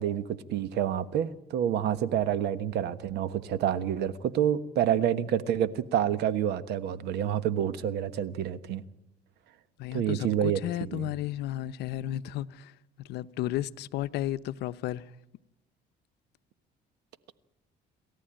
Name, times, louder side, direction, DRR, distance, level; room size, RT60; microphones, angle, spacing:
voice 1, 0.0-8.8 9.9-11.1, right 10 dB, 80° right, 1.4 m, -28 dB
voice 2, 9.8-12.7 13.0-15.1, left 13 dB, 80° left, 0.7 m, -33 dB
28.0 x 14.0 x 8.9 m
cardioid pair, 110°, 17 cm